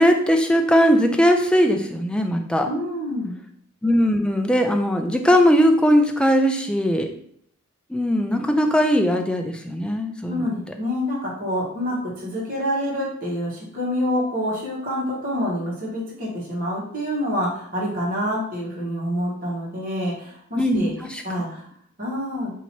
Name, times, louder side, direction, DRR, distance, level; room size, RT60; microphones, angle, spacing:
voice 1, 0.0-2.7 3.8-7.1 7.9-10.4 20.6-21.2, equal, 5° left, 4 dB, 0.3 m, -19 dB
voice 2, 2.6-3.4 10.3-20.9 21.2-21.7 22.0-22.5, equal, 40° right, -5 dB, 1.4 m, -27 dB
2.9 x 2.7 x 4.4 m, 0.65 s
head